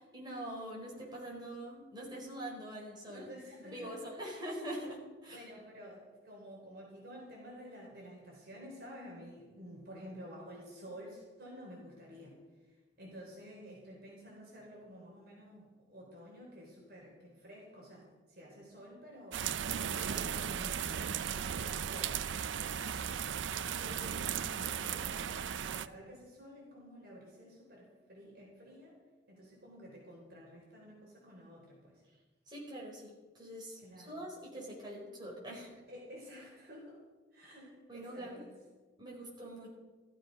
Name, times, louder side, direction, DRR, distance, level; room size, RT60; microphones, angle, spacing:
voice 1, 0.1-3.3 3.6-5.5 23.6-24.7 32.5-35.7 37.9-38.4 39.0-39.7, right 1 dB, 25° right, -3 dB, 4.6 m, -44 dB
voice 2, 3.1-4.1 5.3-12.4 13.0-19.4 20.0-23.1 23.8-25.3 25.6-29.0 29.3-32.0 33.8-34.3 35.5-35.6 35.9-37.0 37.3-38.5, equal, 55° right, -2 dB, 4.1 m, -51 dB
sound 1, 19.3-25.9, right 8 dB, 80° right, 0.5 m, -36 dB
15.0 x 14.0 x 5.3 m, 1.3 s
head